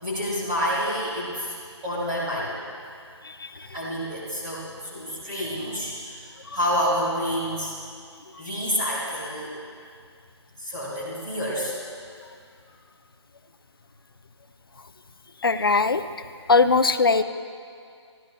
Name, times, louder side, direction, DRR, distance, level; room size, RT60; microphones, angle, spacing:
voice 1, 0.0-1.5 1.8-2.6 3.7-7.7 8.4-9.5 10.6-11.8, equal, 10° right, -9 dB, 2.0 m, -28 dB
voice 2, 15.4-16.0 16.5-17.2, left 4 dB, 50° left, 9 dB, 0.6 m, -20 dB
29.0 x 14.5 x 2.3 m, 2.2 s
hypercardioid pair, 180°, 15 cm